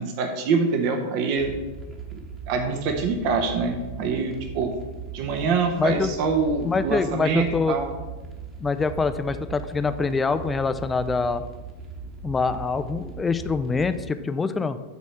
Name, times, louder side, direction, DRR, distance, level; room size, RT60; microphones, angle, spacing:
voice 1, 0.0-1.5 2.1-2.2 2.5-4.7 5.1-7.9, right 4 dB, 45° right, 4 dB, 0.9 m, -25 dB
sound 1, 1.4-14.0, right 4 dB, 25° right, 1.3 m, -39 dB
voice 2, 5.8-6.1 6.6-7.8 8.6-11.4 12.2-14.8, left 4 dB, 15° left, 11 dB, 0.4 m, -25 dB
8.2 x 4.1 x 6.1 m, 1.1 s
figure-of-eight pair, 90°, 0 cm